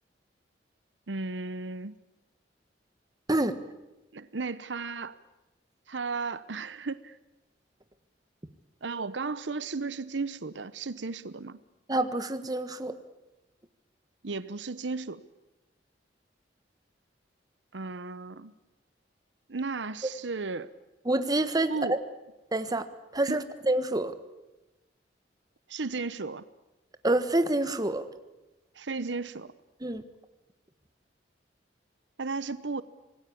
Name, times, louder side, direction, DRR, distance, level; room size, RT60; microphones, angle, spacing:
voice 1, 1.1-1.9 4.1-5.2 5.9-7.2 8.8-11.6 14.2-15.2 17.7-18.5 19.5-20.7 21.7-22.0 23.3-23.4 25.7-26.4 28.7-29.5 32.2-32.8, right 4 dB, 85° right, 15 dB, 0.9 m, -34 dB
voice 2, 3.3-3.6 11.9-13.0 21.0-22.0 22.5-22.9 23.1-24.1 27.0-28.1 29.8-30.0, right 2 dB, 20° right, 10 dB, 1.4 m, -27 dB
26.0 x 19.5 x 8.6 m, 1.0 s
head